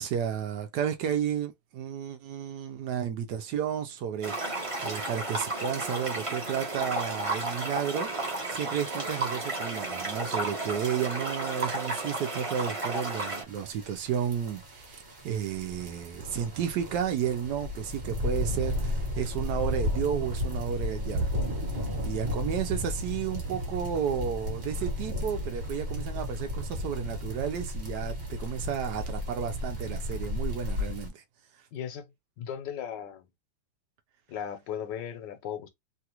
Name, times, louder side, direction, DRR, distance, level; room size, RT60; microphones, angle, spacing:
voice 1, 0.0-21.3 22.0-31.2, right 8 dB, 75° right, 1.1 m, -32 dB
sound 1, 4.2-13.4, right 2 dB, 25° right, 0.8 m, -33 dB
sound 2, 13.5-31.1, left 1 dB, 40° right, 1.5 m, -33 dB
voice 2, 31.7-32.1 32.4-33.3 34.3-35.7, left 9 dB, 80° left, 1.4 m, -36 dB
3.2 x 2.4 x 2.9 m
omnidirectional pair, 1.9 m